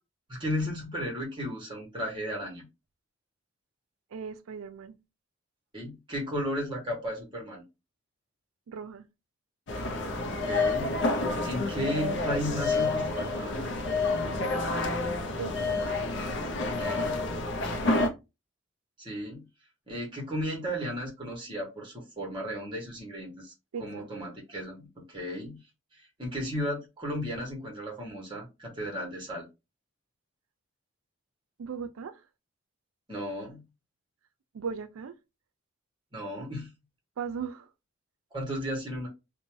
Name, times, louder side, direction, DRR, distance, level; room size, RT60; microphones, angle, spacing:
voice 1, 0.3-2.7 5.7-7.6 10.2-10.9 11.4-13.6 16.8-17.2 19.0-19.4 19.9-23.5 23.8-25.6 26.2-29.4 33.1-33.6 36.1-36.7 38.3-39.1, equal, 25° right, 1.0 m, -34 dB
voice 2, 4.1-5.0 8.7-9.1 15.4-15.9 17.7-18.1 23.7-24.1 31.6-32.2 34.5-35.1 37.2-37.7, right 6 dB, 80° right, 0.4 m, -38 dB
sound 1, 9.7-18.1, left 3 dB, 55° left, 0.5 m, -29 dB
2.6 x 2.1 x 3.0 m
head